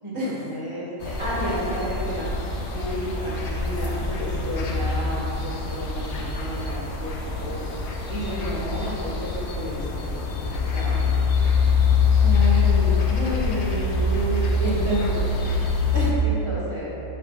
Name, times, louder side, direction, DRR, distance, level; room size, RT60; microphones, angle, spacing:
voice 1, 0.0-2.3 2.7-7.6 8.1-10.1 10.4-11.3 16.2-16.9, equal, 25° right, -7 dB, 1.6 m, -32 dB
sound 1, 1.0-16.1, left 4 dB, 65° left, 1.0 m, -24 dB
voice 2, 12.2-15.4 15.9-16.2, right 1 dB, 60° right, -8 dB, 1.9 m, -28 dB
5.2 x 5.0 x 4.9 m, 2.8 s
omnidirectional pair, 1.3 m